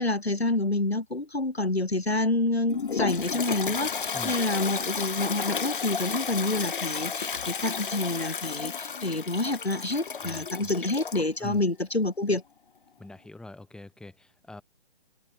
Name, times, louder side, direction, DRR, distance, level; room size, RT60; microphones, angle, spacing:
voice 1, 0.0-12.4, left 2 dB, 90° left, 2.9 m, -28 dB
Toilet flush, 2.7-11.3, left 6 dB, 55° left, 5.5 m, -32 dB
voice 2, 10.2-10.7 11.4-11.6 13.0-14.6, left 2 dB, ahead, 7.9 m, -44 dB
figure-of-eight pair, 140°, 31 cm